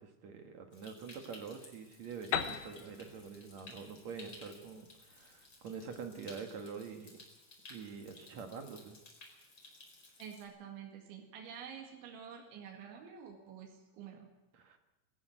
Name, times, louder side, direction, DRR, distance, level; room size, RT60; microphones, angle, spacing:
voice 1, 0.0-7.2 7.7-9.0 14.5-14.8, right 5 dB, 55° right, 5 dB, 2.0 m, -46 dB
Stream, 0.7-10.4, left 2 dB, 30° left, 5.1 m, -56 dB
Piano, 2.3-6.0, left 9 dB, 85° left, 3.6 m, -41 dB
voice 2, 10.2-14.3, right 7 dB, 80° right, 1 dB, 4.4 m, -49 dB
22.0 x 14.5 x 9.1 m, 1.0 s
omnidirectional pair, 5.3 m